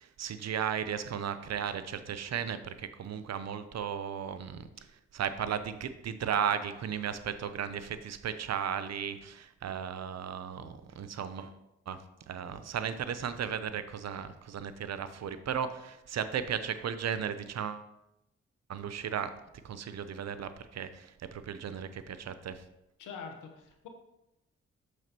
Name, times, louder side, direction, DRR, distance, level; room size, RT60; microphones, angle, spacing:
voice 1, 0.0-4.9 5.1-11.6 11.9-17.9 18.7-19.3 19.6-22.6, right 8 dB, 60° right, 12 dB, 0.6 m, -35 dB
voice 2, 23.0-23.9, left 6 dB, 85° left, 4 dB, 1.0 m, -44 dB
6.5 x 6.3 x 2.9 m, 0.87 s
supercardioid pair, 45°, 30 cm